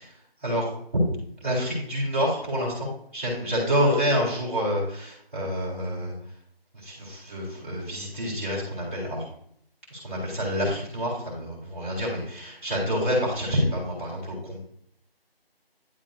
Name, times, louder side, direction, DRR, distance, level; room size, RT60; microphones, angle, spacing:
voice 1, 0.4-0.7 1.4-6.1 6.7-9.3 9.9-14.6, equal, 15° right, -11 dB, 2.2 m, -27 dB
10.0 x 3.9 x 2.6 m, 0.69 s
figure-of-eight pair, 180°, 31 cm